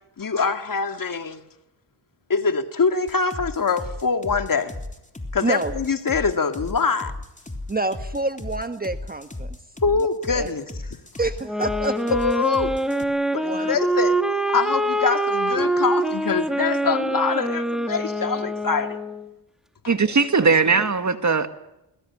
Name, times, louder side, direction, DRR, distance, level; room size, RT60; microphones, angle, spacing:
voice 1, 0.2-1.4 2.3-4.8 5.3-7.1 9.8-10.7 12.1-12.8 13.3-14.2 14.5-19.0, left 5 dB, 45° left, 2.2 m, -24 dB
sound 1, 3.1-13.0, left 2 dB, 15° left, 3.6 m, -35 dB
voice 2, 5.4-5.7 7.7-9.6 10.0-10.1 10.3-10.5 11.2-12.1 13.4-13.7 20.0-20.1 20.4-20.8, right 2 dB, 20° right, 1.3 m, -28 dB
sound 2, 11.4-19.3, right 1 dB, ahead, 2.3 m, -24 dB
voice 3, 19.9-21.5, right 4 dB, 35° right, 2.0 m, -19 dB
21.0 x 21.0 x 9.7 m
cardioid pair, 70°, 47 cm